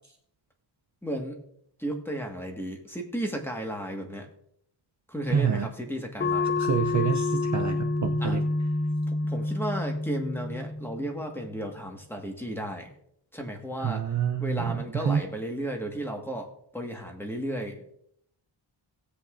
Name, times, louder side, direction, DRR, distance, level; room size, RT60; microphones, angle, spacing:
voice 1, 1.0-1.4 1.8-4.3 5.1-6.5 8.2-8.4 9.1-12.9 13.3-14.1 14.4-17.9, right 1 dB, 5° left, 2 dB, 1.6 m, -34 dB
voice 2, 5.3-5.7 6.6-8.4 13.8-15.2, right 7 dB, 35° right, 5 dB, 0.5 m, -27 dB
sound 1, 6.2-11.3, left 3 dB, 25° left, 0.3 m, -28 dB
18.5 x 8.0 x 2.5 m, 0.69 s
wide cardioid pair, 130°, 49 cm